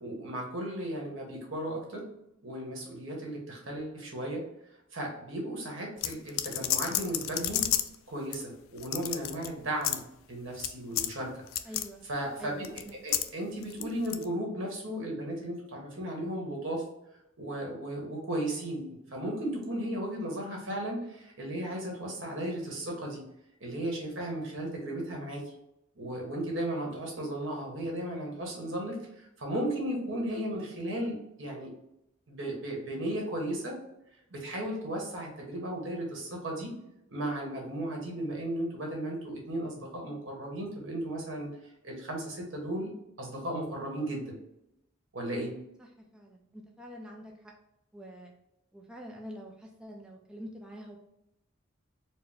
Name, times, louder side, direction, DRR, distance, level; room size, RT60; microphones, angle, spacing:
voice 1, 0.0-2.1 2.4-4.4 4.9-7.7 8.1-11.3 12.1-12.7 13.0-16.8 17.4-23.2 23.6-25.4 26.0-31.7 32.3-33.8 34.3-36.7 37.1-41.5 41.8-42.9 43.2-44.4 45.1-45.5, right 1 dB, 70° right, 0 dB, 1.2 m, -35 dB
sound 1, 6.0-8.0 8.3-8.4 8.8-9.5 9.8-10.0 10.6-10.7 11.0-11.1 11.5-11.9 12.6-13.3 13.6-14.2, left 12 dB, 80° left, 0.3 m, -30 dB
voice 2, 11.6-12.0 12.4-13.0 45.8-47.5 47.9-48.3 48.7-51.0, equal, 5° right, 0 dB, 0.4 m, -46 dB
4.5 x 2.1 x 3.4 m, 0.83 s
head